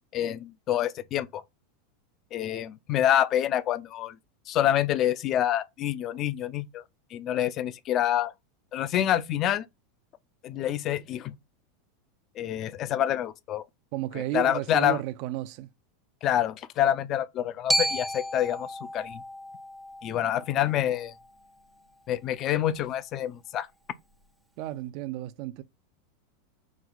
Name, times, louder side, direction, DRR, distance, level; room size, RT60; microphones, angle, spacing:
voice 1, 0.1-1.4 2.3-4.2 4.5-6.8 7.1-8.3 8.7-9.7 10.4-11.4 12.4-13.6 14.1-15.0 16.2-19.2 20.0-21.1 22.1-23.7, left 11 dB, 40° left, 0.5 m, -27 dB
voice 2, 13.9-15.7 20.1-20.2 24.6-25.6, right 14 dB, 55° right, 0.4 m, -33 dB
Glockenspiel, 17.7-21.8, equal, 5° right, 0.6 m, -33 dB
6.0 x 2.3 x 3.9 m
supercardioid pair, 125°, 0 cm